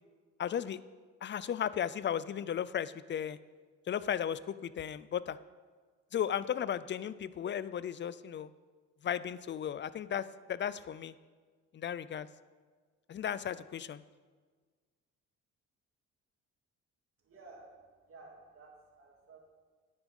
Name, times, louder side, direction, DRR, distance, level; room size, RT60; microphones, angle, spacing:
voice 1, 0.4-0.8 1.2-3.4 3.9-5.4 6.1-8.5 9.0-11.1 11.7-12.3 13.1-14.0, left 9 dB, 40° left, 17 dB, 0.5 m, -35 dB
voice 2, 17.2-19.4, right 3 dB, 45° right, -1 dB, 2.9 m, -54 dB
9.8 x 9.2 x 5.3 m, 1.5 s
cardioid pair, 90°, 30 cm